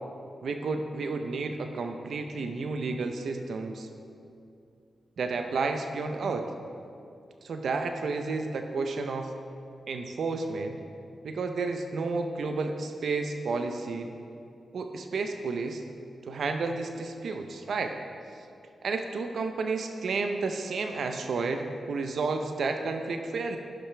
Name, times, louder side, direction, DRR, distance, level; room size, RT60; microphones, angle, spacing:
voice 1, 0.4-3.9 5.2-6.5 7.4-9.3 9.9-10.8 11.2-14.1 14.7-15.8 16.3-17.9 18.8-23.6, right 4 dB, 75° right, 5 dB, 0.6 m, -31 dB
16.5 x 5.7 x 3.4 m, 2.6 s
supercardioid pair, 45°, 0 cm